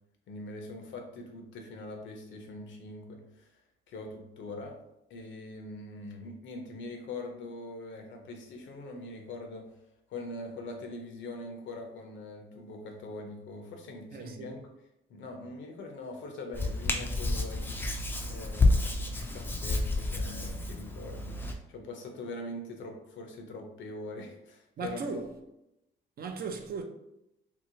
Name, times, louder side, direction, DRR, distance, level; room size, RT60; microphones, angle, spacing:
voice 1, 0.3-3.5 3.9-4.8 5.1-9.7 10.1-14.6 15.1-17.7 18.3-25.2, left 2 dB, 70° left, 0.6 m, -42 dB
voice 2, 14.1-14.5 24.8-25.2 26.2-26.8, right 5 dB, 50° right, 0.5 m, -36 dB
Hands, 16.5-21.5, left 2 dB, 10° left, 0.3 m, -29 dB
2.8 x 2.0 x 2.7 m
cardioid pair, 90°, 20 cm